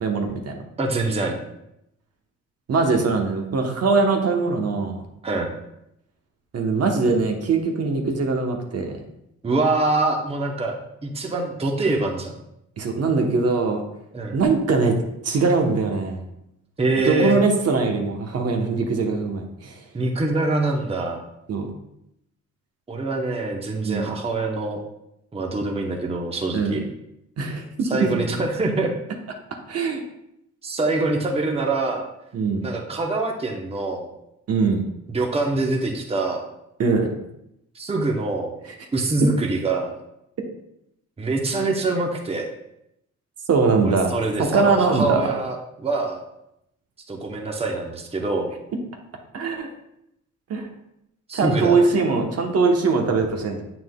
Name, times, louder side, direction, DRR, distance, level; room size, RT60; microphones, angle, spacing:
voice 1, 0.0-0.6 2.7-5.0 6.5-9.0 12.8-13.8 14.3-14.9 15.2-16.2 17.0-19.8 21.5-21.7 23.8-24.1 26.5-26.8 27.4-27.9 29.7-30.0 32.3-32.7 34.5-34.9 36.8-37.1 43.5-44.1 44.4-45.3 49.3-49.7 50.5-50.7 51.3-53.6, right 4 dB, 55° right, 3 dB, 1.0 m, -21 dB
voice 2, 0.8-1.4 5.2-5.5 9.4-10.7 11.0-12.3 14.1-14.4 16.8-17.4 19.9-21.2 22.9-24.8 25.3-26.8 27.9-28.9 30.6-32.1 32.6-34.1 35.1-36.4 37.7-38.5 38.9-40.0 41.2-42.5 43.8-46.2 47.1-48.5 51.3-51.9 53.1-53.2, right 2 dB, 20° right, 1 dB, 0.8 m, -24 dB
7.5 x 5.9 x 2.2 m, 0.82 s
cardioid pair, 90°, 30 cm